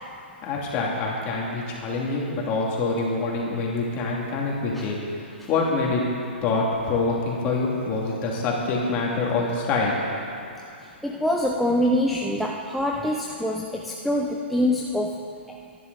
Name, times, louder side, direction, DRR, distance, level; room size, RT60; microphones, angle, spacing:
voice 1, 0.4-6.0 6.4-10.0, left 3 dB, 25° left, -3 dB, 2.6 m, -26 dB
voice 2, 11.0-15.3, left 1 dB, ahead, -1 dB, 0.5 m, -25 dB
23.0 x 11.0 x 4.1 m, 2.6 s
hypercardioid pair, 160°, 6 cm